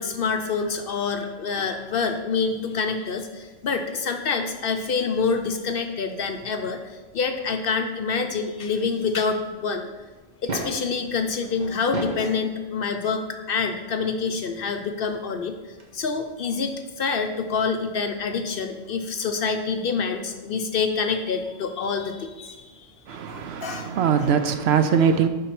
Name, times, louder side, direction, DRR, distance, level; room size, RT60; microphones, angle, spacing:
voice 1, 0.0-9.9 10.4-15.6 15.9-22.7 23.1-24.0, left 5 dB, 55° left, 6 dB, 0.7 m, -27 dB
sound 1, 10.3-10.9 11.7-12.3 13.6-13.7 15.5-15.6 15.8-15.9, right 1 dB, 40° right, 1.2 m, -31 dB
voice 2, 23.1-25.3, right 7 dB, 65° right, 9 dB, 0.8 m, -21 dB
7.1 x 5.0 x 5.9 m, 1.2 s
omnidirectional pair, 1.2 m